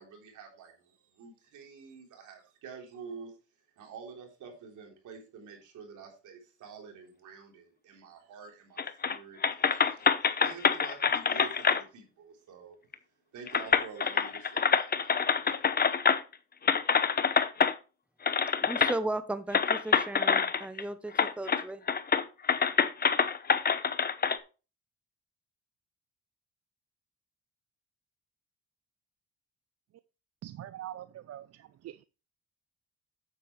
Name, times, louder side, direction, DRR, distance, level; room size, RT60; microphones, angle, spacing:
voice 1, 0.0-3.4 3.8-12.8 13.3-15.8, right 6 dB, 80° right, 3.5 m, -48 dB
sound 1, 8.8-9.2 9.4-11.8 12.9-13.0 13.5-16.3 16.7-17.7 18.3-19.0 19.5-20.8 21.2-21.6 21.9-24.4, left 6 dB, 30° left, 0.8 m, -26 dB
voice 2, 18.6-21.8, right 2 dB, 5° right, 0.7 m, -36 dB
voice 3, 30.4-32.0, right 12 dB, 55° right, 0.5 m, -43 dB
8.7 x 8.4 x 3.2 m
cardioid pair, 90°, 30 cm